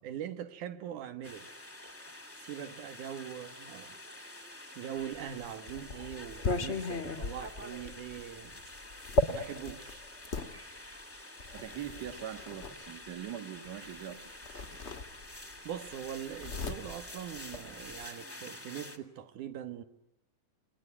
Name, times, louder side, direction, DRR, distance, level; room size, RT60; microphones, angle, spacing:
voice 1, 0.0-1.5 2.1-4.0 4.8-8.6 9.3-10.0 15.6-19.8, right 10 dB, 80° right, 2.7 m, -42 dB
sound 1, 1.2-19.0, left 1 dB, 5° left, 1.1 m, -48 dB
sound 2, 5.2-10.5 11.4-12.7 14.0-14.1 14.4-15.5 15.8-18.0, left 2 dB, 45° left, 0.8 m, -35 dB
voice 2, 11.5-14.2 14.5-14.8, right 10 dB, 40° right, 1.7 m, -42 dB
29.0 x 20.0 x 9.7 m
omnidirectional pair, 3.5 m